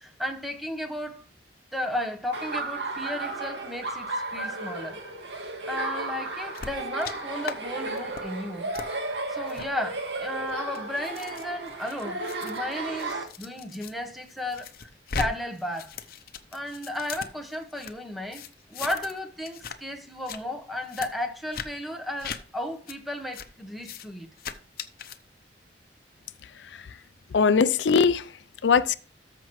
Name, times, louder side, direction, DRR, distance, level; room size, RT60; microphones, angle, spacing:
voice 1, 0.0-1.2 1.7-5.0 5.4-8.7 9.0-14.9 15.2-15.9 16.5-18.4 18.7-24.3, left 1 dB, ahead, 1.1 m, -34 dB
Laughter, 2.3-13.2, right 2 dB, 80° right, 1.9 m, -34 dB
sound 1, 6.5-7.1 7.4-7.6 7.9-8.2 8.7-8.9 9.5-9.7 10.3-13.9 14.3-15.3 15.6-17.9 18.3-19.2 19.4-19.8 20.1-20.4 20.9-21.1 21.5-21.7 22.2-22.4 22.9-23.0 23.3-23.5 23.8-24.1 24.4-25.2, left 5 dB, 55° left, 0.7 m, -38 dB
voice 2, 26.4-27.0 27.3-28.9, left 5 dB, 90° left, 0.5 m, -22 dB
13.5 x 5.9 x 3.1 m
head